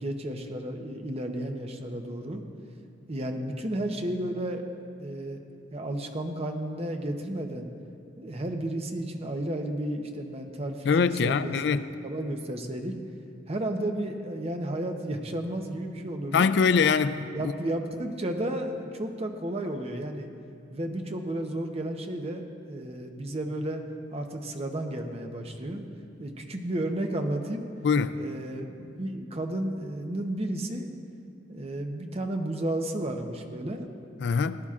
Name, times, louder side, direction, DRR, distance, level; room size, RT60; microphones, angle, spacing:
voice 1, 0.0-2.4 3.1-4.6 5.0-5.4 5.7-7.7 8.2-11.5 12.0-12.9 13.5-16.5 17.3-20.3 20.7-23.8 24.1-25.8 26.2-27.7 28.1-30.9 31.5-33.9, right 1 dB, 35° right, 0.8 m, -32 dB
voice 2, 10.8-11.8 16.3-17.5 27.8-28.2 34.2-34.6, left 5 dB, 65° left, 0.4 m, -23 dB
19.0 x 10.5 x 2.5 m
head